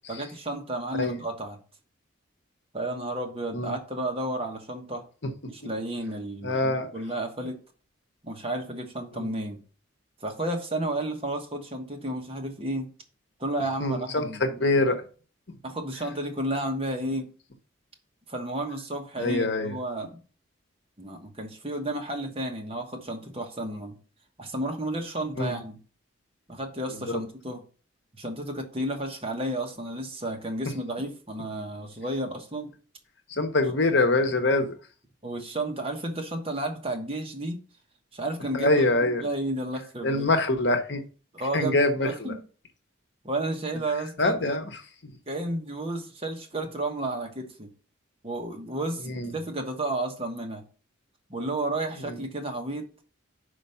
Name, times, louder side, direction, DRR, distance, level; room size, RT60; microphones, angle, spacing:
voice 1, 0.1-1.6 2.7-5.0 5.5-7.6 8.2-9.6 10.2-12.9 13.4-14.4 15.6-17.3 18.3-20.2 21.0-24.0 24.4-25.8 26.5-27.6 28.2-32.7 35.2-37.6 38.1-40.3 41.3-41.8 42.0-42.4 43.2-44.6 45.3-47.7 48.2-50.6 51.3-52.9, right 1 dB, 30° right, 1.2 m, -32 dB
voice 2, 6.4-6.9 9.1-9.3 13.8-15.0 19.2-19.7 25.4-25.6 27.1-27.2 33.3-34.7 38.5-39.3 40.0-41.0 41.5-42.3 44.2-44.6 49.0-49.3 52.1-52.2, left 2 dB, 55° left, 1.1 m, -24 dB
5.1 x 5.1 x 5.6 m
head